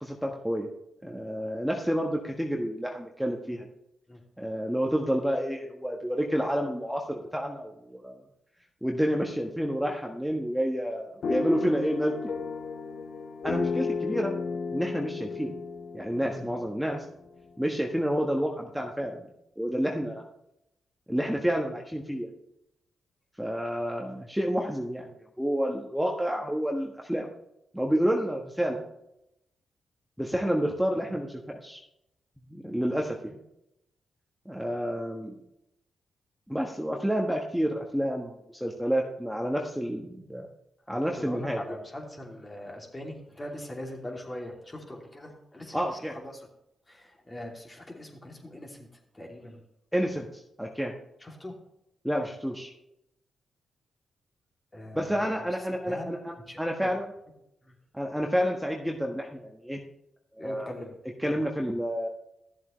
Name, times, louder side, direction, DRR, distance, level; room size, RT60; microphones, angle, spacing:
voice 1, 0.0-0.7 1.0-3.7 4.4-8.1 8.8-12.1 13.4-14.4 14.7-15.5 15.9-17.0 17.6-19.2 19.6-20.2 21.1-22.3 23.4-27.3 27.7-28.8 30.2-31.8 32.5-33.4 34.4-35.4 36.5-40.5 40.9-41.8 45.7-46.2 49.9-50.9 52.0-52.7 54.9-57.1 57.9-59.8 60.4-60.7 61.2-62.1, equal, ahead, 1 dB, 1.4 m, -29 dB
sound 1, 11.2-17.3, left 4 dB, 65° left, 0.7 m, -33 dB
voice 2, 40.9-46.5 46.9-48.9 49.1-49.6 51.2-51.5 54.7-56.1 56.5-56.9 57.6-57.7 60.4-61.4, left 1 dB, 25° left, 0 dB, 2.7 m, -42 dB
13.0 x 7.4 x 3.2 m, 0.82 s
hypercardioid pair, 45°, 0 cm